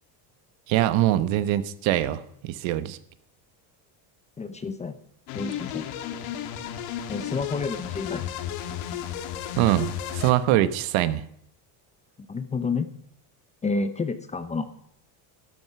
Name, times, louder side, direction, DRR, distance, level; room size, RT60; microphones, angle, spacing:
voice 1, 0.7-3.0 9.6-11.2, right 13 dB, 70° right, 13 dB, 1.1 m, -23 dB
voice 2, 4.4-5.0 5.3-5.9 7.1-8.3 12.3-12.9 13.6-14.7, left 4 dB, 15° left, 10 dB, 0.6 m, -29 dB
sound 1, 5.3-10.3, left 10 dB, 80° left, 1.8 m, -33 dB
12.5 x 11.5 x 5.8 m, 0.71 s
cardioid pair, 155°, 47 cm